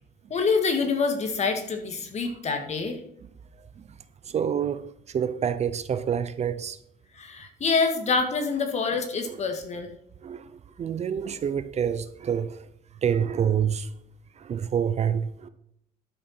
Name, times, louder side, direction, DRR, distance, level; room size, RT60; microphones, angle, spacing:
voice 1, 0.3-3.0 7.1-9.9, left 4 dB, 40° left, 2.1 m, -26 dB
voice 2, 4.2-6.8 10.2-12.7 13.0-13.9 14.4-15.5, right 8 dB, 40° right, 0.7 m, -27 dB
12.0 x 6.8 x 4.4 m
cardioid pair, 110°, 17 cm